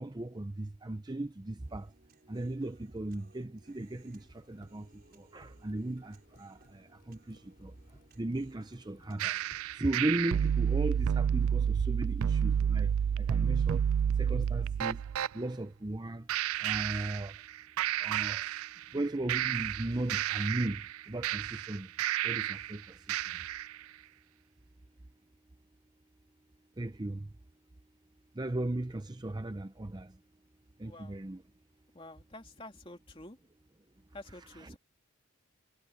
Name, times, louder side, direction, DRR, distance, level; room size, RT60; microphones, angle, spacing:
voice 1, 0.0-1.9 2.3-9.4 9.7-13.9 14.2-15.0 15.3-16.3 16.6-17.4 18.0-18.5 18.9-21.9 22.2-23.5 26.8-27.3 28.3-30.2 30.8-31.4 34.4-34.8, right 1 dB, 20° right, 0.5 m, -37 dB
Human voice, 1.6-9.6, right 2 dB, 45° right, 5.6 m, -64 dB
sound 1, 3.7-14.7, equal, 45° left, 4.0 m, -64 dB
sound 2, 9.2-15.3 16.3-17.5 17.8-19.0 19.3-22.7 23.1-23.7, right 9 dB, 85° right, 0.3 m, -30 dB
voice 2, 30.8-31.2 31.9-33.4 34.1-34.8, left 1 dB, 25° left, 2.8 m, -49 dB
head